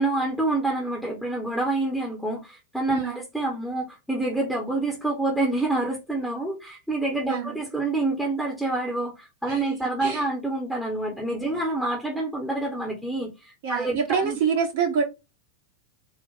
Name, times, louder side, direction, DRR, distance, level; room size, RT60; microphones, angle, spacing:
voice 1, 0.0-14.0 14.2-14.4, right 2 dB, ahead, 1.1 m, -27 dB
voice 2, 11.2-11.6 13.6-15.0, right 6 dB, 50° right, 1.2 m, -26 dB
4.1 x 2.4 x 3.6 m
figure-of-eight pair, 90°, 0 cm